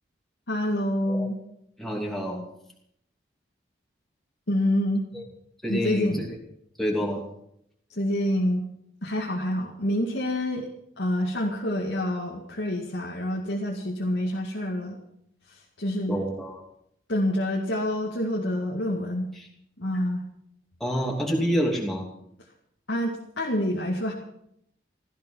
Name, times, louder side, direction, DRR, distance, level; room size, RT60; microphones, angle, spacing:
voice 1, 0.5-1.4 4.5-5.0 5.7-6.3 7.9-8.6 9.0-10.7 11.0-15.0 15.5-16.3 17.1-19.3 19.8-20.3 22.9-24.1, left 1 dB, 75° left, -2 dB, 2.1 m, -27 dB
voice 2, 1.8-2.4 5.1-5.2 5.6-6.4 6.8-7.2 16.1-16.6 19.3-19.5 20.8-22.1, equal, ahead, -2 dB, 2.8 m, -28 dB
16.5 x 14.0 x 5.7 m, 0.74 s
head